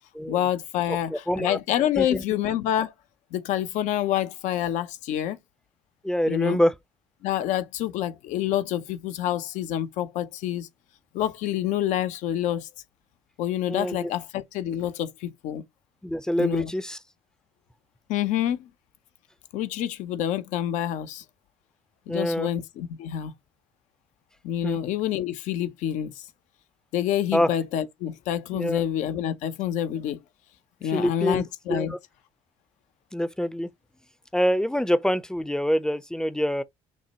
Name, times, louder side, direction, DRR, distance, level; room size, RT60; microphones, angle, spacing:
voice 1, 0.3-2.9 3.3-5.4 6.3-6.6 7.2-10.7 11.1-12.7 13.4-15.6 16.4-16.7 18.1-18.7 19.5-21.2 22.1-23.3 24.4-26.3 26.9-30.2 30.8-31.9, left 11 dB, 70° left, 0.6 m, -27 dB
voice 2, 0.9-1.6 2.0-2.2 6.0-6.7 13.7-14.1 16.0-17.0 22.1-22.5 24.6-24.8 27.3-27.5 28.5-28.9 30.8-31.4 31.7-32.0 33.1-33.7 34.3-36.6, equal, 5° left, 0.5 m, -25 dB
6.0 x 2.1 x 2.8 m
hypercardioid pair, 55°, 13 cm